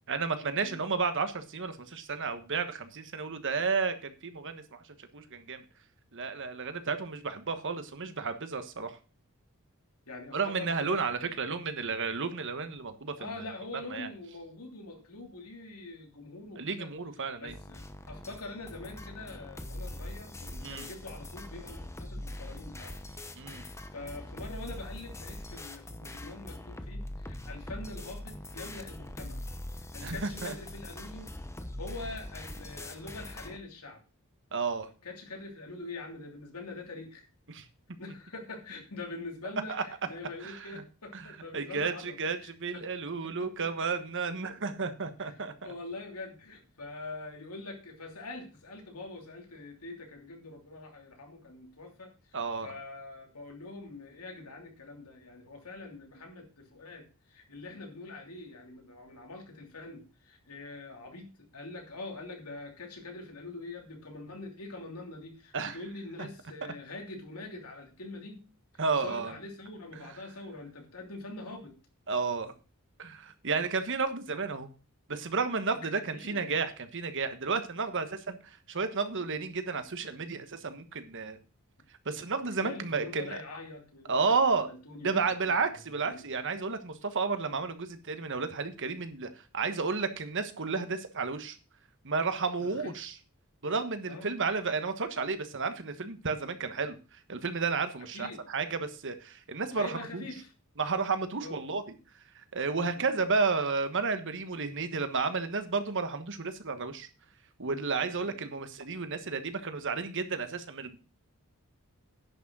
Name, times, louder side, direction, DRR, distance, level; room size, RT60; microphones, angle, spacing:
voice 1, 0.1-5.6 6.1-9.0 10.3-13.3 13.9-14.1 16.6-17.6 20.6-20.9 23.4-23.6 30.0-30.5 34.5-34.9 37.5-37.6 39.7-39.8 40.4-40.7 41.1-45.5 52.3-52.7 65.5-65.8 68.8-69.3 72.1-72.5 73.0-74.7 75.1-81.4 82.0-83.4 84.1-84.7 85.0-91.6 92.0-93.1 93.6-100.2 100.8-101.8 102.3-107.1 107.6-111.0, right 4 dB, 60° right, 9 dB, 1.3 m, -32 dB
voice 2, 10.1-11.5 13.2-16.9 17.4-23.0 23.9-29.4 29.7-31.3 31.8-34.0 35.0-37.2 38.0-42.9 43.2-43.7 45.2-68.5 69.0-71.8 75.8-76.4 82.4-85.7 86.0-86.3 92.6-93.0 94.1-94.3 98.1-98.5 99.7-100.5 101.4-101.6 102.8-103.0 108.1-108.3, left 2 dB, 85° left, 2 dB, 3.0 m, -44 dB
sound 1, 17.5-33.6, left 1 dB, 15° left, 0.9 m, -42 dB
10.5 x 6.2 x 6.1 m, 0.34 s
head